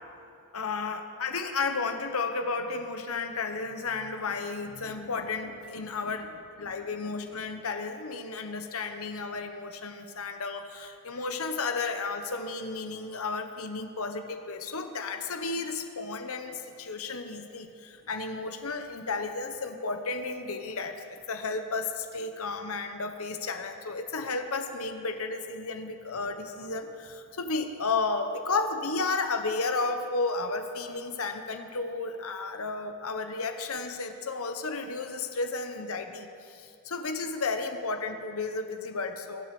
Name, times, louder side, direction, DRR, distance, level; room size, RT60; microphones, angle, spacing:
voice 1, 0.5-39.5, left 3 dB, 75° left, 6 dB, 1.1 m, -33 dB
22.5 x 7.8 x 6.0 m, 2.4 s
head